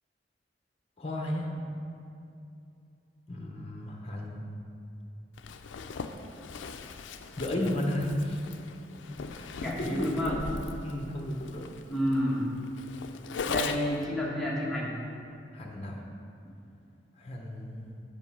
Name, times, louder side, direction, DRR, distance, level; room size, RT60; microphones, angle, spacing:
voice 1, 1.0-1.5 3.3-4.5 7.4-8.5 9.2-10.4 10.8-11.7 15.5-16.0 17.2-18.0, left 1 dB, 35° left, 0 dB, 0.8 m, -34 dB
Zipper (clothing), 5.4-14.1, left 5 dB, 80° left, 0.4 m, -39 dB
voice 2, 9.6-10.4 11.9-12.5 13.4-14.9, equal, ahead, -6 dB, 1.3 m, -30 dB
7.1 x 5.3 x 5.5 m, 2.6 s
head